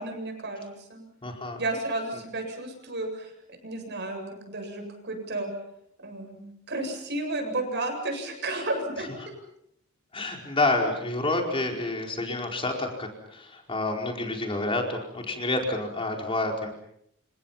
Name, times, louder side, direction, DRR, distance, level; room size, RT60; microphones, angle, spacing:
voice 1, 0.0-1.0 1.6-3.3 3.6-5.5 6.0-9.3, right 2 dB, 55° right, 5 dB, 7.9 m, -32 dB
voice 2, 1.2-1.6 10.1-16.7, left 2 dB, 25° left, 2 dB, 4.7 m, -28 dB
30.0 x 28.0 x 5.8 m, 0.74 s
head